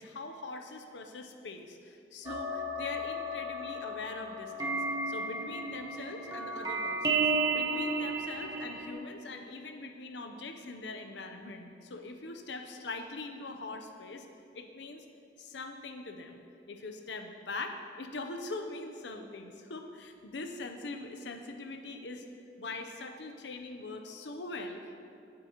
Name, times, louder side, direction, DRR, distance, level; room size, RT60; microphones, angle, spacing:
voice 1, 0.0-7.2 7.5-14.3 14.5-15.0 15.4-22.2 22.6-25.0, left 3 dB, 90° left, 5 dB, 0.7 m, -42 dB
sound 1, 2.2-8.9, right 3 dB, 20° right, 1.3 m, -33 dB
18.5 x 7.6 x 3.0 m, 2.6 s
head